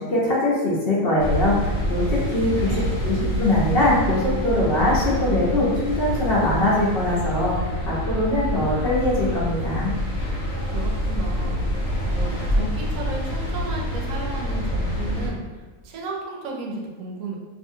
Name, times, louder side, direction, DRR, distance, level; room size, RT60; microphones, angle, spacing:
voice 1, 0.0-9.9, left 1 dB, 50° left, -7 dB, 0.8 m, -22 dB
sound 1, 1.2-15.3, equal, 75° left, 1.1 m, -26 dB
voice 2, 2.5-2.9 10.7-17.4, right 3 dB, 80° right, -1 dB, 0.9 m, -34 dB
2.6 x 2.6 x 2.6 m, 1.3 s
omnidirectional pair, 1.4 m